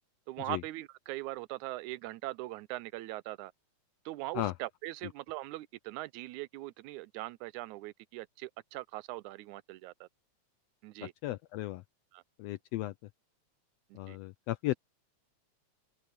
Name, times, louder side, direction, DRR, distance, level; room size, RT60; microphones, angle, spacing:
voice 1, 0.3-3.5 4.1-10.1 10.8-11.1 12.1-12.2 13.9-14.2, right 18 dB, 85° right, 2.0 m, -41 dB
voice 2, 11.2-11.8 12.4-12.9 13.9-14.7, left 16 dB, 80° left, 1.4 m, -35 dB
omnidirectional pair, 3.3 m